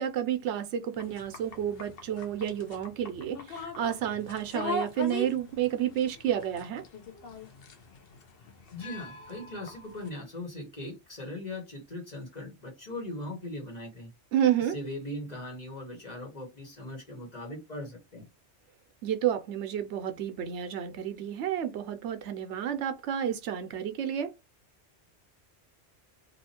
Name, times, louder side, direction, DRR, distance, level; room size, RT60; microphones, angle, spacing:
voice 1, 0.0-6.8 14.3-14.8 19.0-24.3, right 10 dB, 75° right, 0.9 m, -30 dB
sound 1, 1.0-10.1, left 2 dB, 60° left, 0.8 m, -41 dB
voice 2, 8.7-14.1 14.7-18.3, left 1 dB, 35° left, 1.3 m, -39 dB
2.7 x 2.5 x 2.8 m
omnidirectional pair, 1.2 m